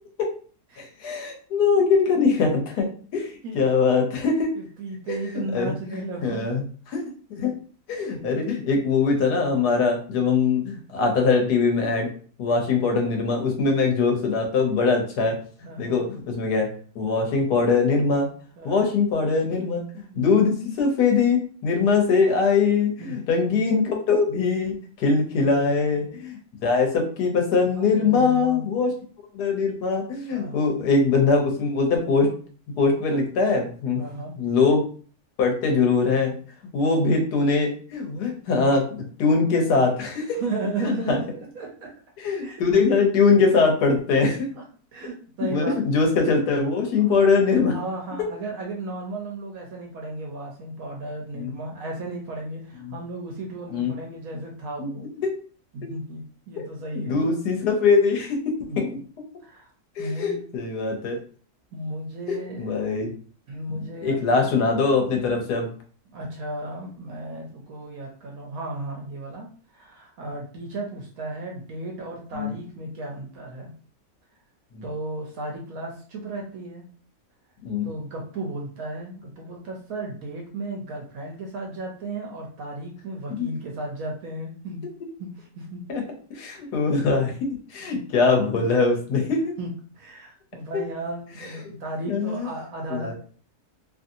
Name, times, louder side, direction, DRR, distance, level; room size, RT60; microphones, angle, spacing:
voice 1, 0.8-2.9 3.1-4.5 5.1-5.7 6.2-6.6 6.9-7.0 7.4-7.5 7.9-12.1 12.4-15.4 15.8-16.7 16.9-18.3 18.6-28.9 29.3-32.3 32.8-34.0 34.4-34.8 35.4-36.3 36.7-40.4 40.8-41.2 42.2-44.5 45.5-47.7 51.3-51.5 52.8-52.9 53.7-53.9 54.8-54.9 55.2-55.3 55.8-55.9 56.9-58.9 60.0-61.2 62.3-63.1 63.7-65.7 72.3-72.5 74.7-74.8 77.6-77.9 83.4-83.5 85.9-86.0 86.3-89.5 92.1-92.5 92.9-93.1, left 4 dB, 90° left, 2 dB, 1.4 m, -22 dB
voice 2, 4.6-6.6 8.2-8.3 13.7-13.9 15.6-16.0 18.6-18.9 20.1-20.4 23.0-23.3 25.3-26.1 27.7-29.0 30.3-30.7 34.0-34.3 40.3-41.9 42.4-42.6 44.3-44.6 44.9-45.8 47.0-47.3 47.7-55.1 55.7-57.2 58.7-58.8 59.4-59.7 60.0-60.5 61.7-62.8 63.5-64.5 66.1-73.7 74.8-76.8 77.8-84.8 85.2-85.8 86.5-86.7 87.9-88.0 88.5-88.6 89.6-89.7 89.9-93.1, right 2 dB, 70° right, -1 dB, 1.0 m, -35 dB
3.0 x 2.6 x 2.6 m, 0.44 s
omnidirectional pair, 1.7 m